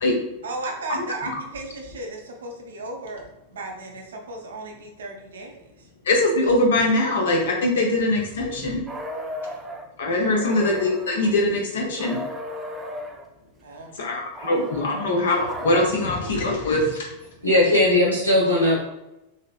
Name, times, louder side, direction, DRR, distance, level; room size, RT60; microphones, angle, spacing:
voice 1, 0.4-5.6 10.3-10.6 13.6-14.0, right 2 dB, 65° right, 2 dB, 0.6 m, -35 dB
voice 2, 6.0-8.8 10.0-12.2 14.0-17.1, left 2 dB, 60° left, 0 dB, 0.7 m, -22 dB
sound 1, 8.9-9.9 10.5-11.4 12.0-13.3 14.3-15.9, equal, 10° right, 0.4 m, -35 dB
voice 3, 17.4-18.8, left 1 dB, 90° right, -4 dB, 1.0 m, -18 dB
3.0 x 2.8 x 2.3 m, 0.93 s
figure-of-eight pair, 90°, 0 cm